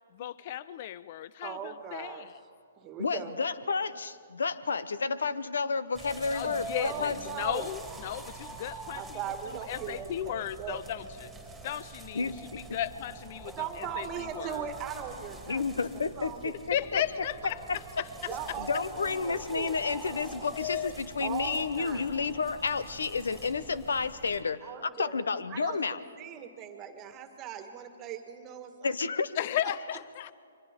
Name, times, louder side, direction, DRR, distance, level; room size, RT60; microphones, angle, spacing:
voice 1, 0.1-2.4 6.3-9.2 9.5-11.3 11.6-12.3 12.7-14.7 16.7-17.6 18.0-18.1 20.5-20.9 29.4-30.3, left 11 dB, 45° left, 18 dB, 0.4 m, -35 dB
voice 2, 1.4-2.3 2.8-3.3 6.8-7.7 8.9-10.8 13.4-15.6 16.2-16.5 18.3-19.8 21.2-22.1 24.6-25.2 25.5-29.0, right 8 dB, 25° right, 6 dB, 1.8 m, -39 dB
voice 3, 3.0-7.2 12.1-12.8 15.5-17.0 18.6-26.0 28.8-29.3, left 4 dB, 80° left, 16 dB, 0.9 m, -31 dB
sound 1, 5.9-24.4, right 3 dB, 5° right, 2.9 m, -45 dB
29.5 x 24.0 x 3.7 m, 2.4 s
hypercardioid pair, 135°, 0 cm